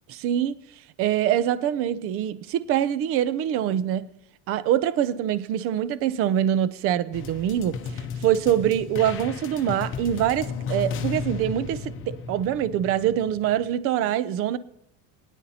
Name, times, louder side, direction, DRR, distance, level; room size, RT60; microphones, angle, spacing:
voice 1, 0.1-4.1 4.5-14.6, right 10 dB, 40° right, 0.5 m, -24 dB
sound 1, 7.1-13.7, left 5 dB, 35° left, 0.9 m, -34 dB
20.5 x 10.0 x 2.8 m
cardioid pair, 155°, 37 cm